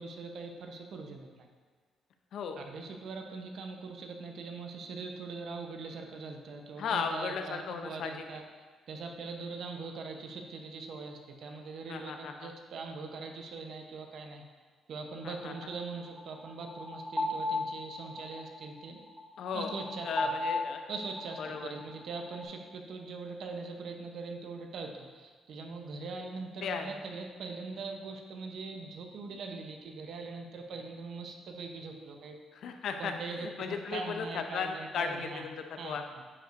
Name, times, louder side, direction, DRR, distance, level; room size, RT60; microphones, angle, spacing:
voice 1, 0.0-1.5 2.6-8.4 8.9-14.4 14.9-19.0 19.5-20.3 20.9-21.4 21.7-32.4 33.0-33.5 33.9-35.4 35.8-36.0, right 4 dB, 65° right, 3 dB, 0.8 m, -42 dB
voice 2, 2.3-2.6 6.8-8.2 11.9-12.5 15.2-15.5 19.4-19.7 20.0-20.8 21.4-21.7 26.6-27.0 32.5-36.0, left 6 dB, 70° left, 6 dB, 0.6 m, -36 dB
sound 1, 15.6-22.4, left 2 dB, 15° left, 1.4 m, -37 dB
9.5 x 5.3 x 2.6 m, 1.5 s
cardioid pair, 90°, 0 cm